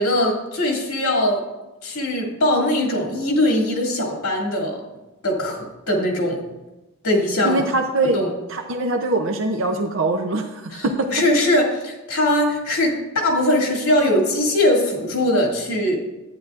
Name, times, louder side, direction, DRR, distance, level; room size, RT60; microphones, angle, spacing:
voice 1, 0.0-1.4 1.8-4.8 5.2-6.4 7.0-7.6 8.1-8.3 10.7-16.0, left 1 dB, 75° left, 0 dB, 2.3 m, -21 dB
voice 2, 7.4-8.2 8.5-11.1, right 2 dB, 65° right, 5 dB, 0.6 m, -22 dB
11.5 x 9.1 x 2.5 m, 1.0 s
head